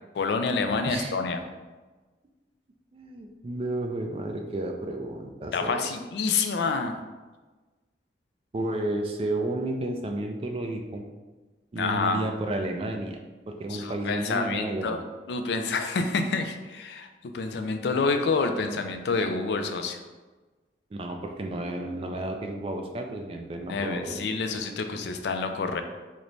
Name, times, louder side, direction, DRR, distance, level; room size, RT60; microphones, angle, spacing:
voice 1, 0.1-1.4 5.5-7.0 11.8-12.2 13.7-17.1 17.3-20.0 23.7-25.8, left 4 dB, 70° left, 7 dB, 0.3 m, -28 dB
voice 2, 2.9-6.0 8.5-11.1 11.7-13.2 13.5-15.0 20.9-24.3, right 1 dB, 30° right, 3 dB, 0.3 m, -32 dB
3.1 x 2.1 x 3.8 m, 1.3 s
head